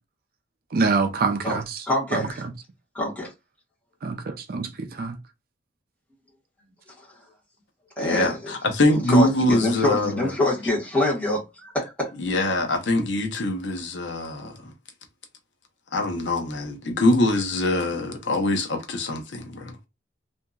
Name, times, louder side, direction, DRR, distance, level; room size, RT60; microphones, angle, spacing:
voice 1, 0.7-1.8 2.1-2.5 4.0-5.2, right 4 dB, 55° right, 0.5 m, -26 dB
voice 2, 1.9-2.4 2.9-3.3 8.0-8.5 8.9-12.1, left 1 dB, 10° left, 1.2 m, -25 dB
voice 3, 8.0-10.3 12.2-14.7 15.9-19.9, left 1 dB, 75° left, 0.7 m, -23 dB
2.8 x 2.5 x 2.3 m
head